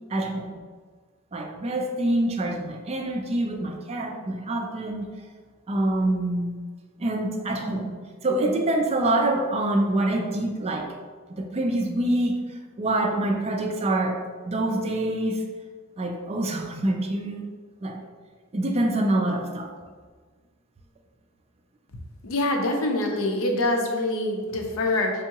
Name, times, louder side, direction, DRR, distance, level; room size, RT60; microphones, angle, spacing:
voice 1, 0.1-0.5 1.3-5.1 5.7-6.6 7.0-7.9 8.2-10.9 11.4-12.4 12.8-14.2 14.4-15.4 16.0-17.4 17.8-18.0 18.5-19.7, right 1 dB, 30° right, 2 dB, 0.4 m, -25 dB
voice 2, 22.2-25.1, left 2 dB, 65° left, 2 dB, 0.6 m, -25 dB
3.6 x 3.4 x 2.9 m, 1.5 s
head